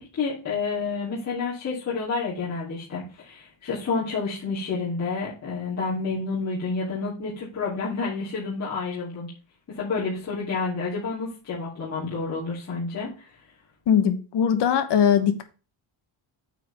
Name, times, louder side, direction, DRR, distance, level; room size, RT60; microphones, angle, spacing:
voice 1, 0.0-9.3 9.7-13.3, left 4 dB, 35° left, -8 dB, 3.1 m, -29 dB
voice 2, 13.9-15.4, left 8 dB, 55° left, 8 dB, 1.1 m, -20 dB
9.1 x 8.1 x 3.5 m, 0.33 s
cardioid pair, 175°, 49 cm